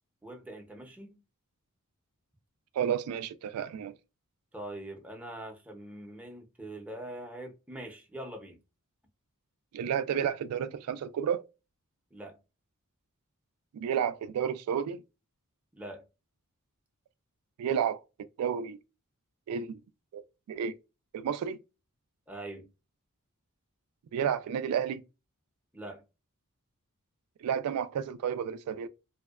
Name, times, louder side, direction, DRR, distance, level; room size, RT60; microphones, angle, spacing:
voice 1, 0.2-1.2 4.5-8.6 12.1-12.4 15.8-16.0 22.3-22.7 25.7-26.0, right 1 dB, 5° right, 0.6 m, -43 dB
voice 2, 2.7-3.9 9.7-11.4 13.7-15.0 17.6-18.0 18.4-18.8 19.5-19.8 20.1-20.2 20.5-20.8 21.1-21.6 24.1-25.0 27.4-28.9, right 8 dB, 80° right, 0.3 m, -31 dB
2.6 x 2.1 x 2.3 m
head